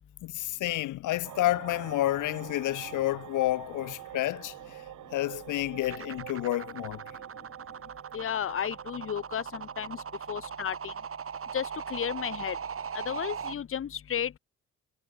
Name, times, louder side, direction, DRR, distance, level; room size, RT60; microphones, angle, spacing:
voice 1, 0.2-4.5 5.1-7.0, left 16 dB, 85° left, 1.8 m, -30 dB
sound 1, 1.2-10.5, right 13 dB, 80° right, 3.0 m, -46 dB
sound 2, 5.8-13.5, right 7 dB, 45° right, 5.6 m, -39 dB
voice 2, 8.1-10.0 10.3-10.9 11.5-12.6 13.1-14.4, left 9 dB, 45° left, 1.3 m, -33 dB
cardioid pair, 90°, 30 cm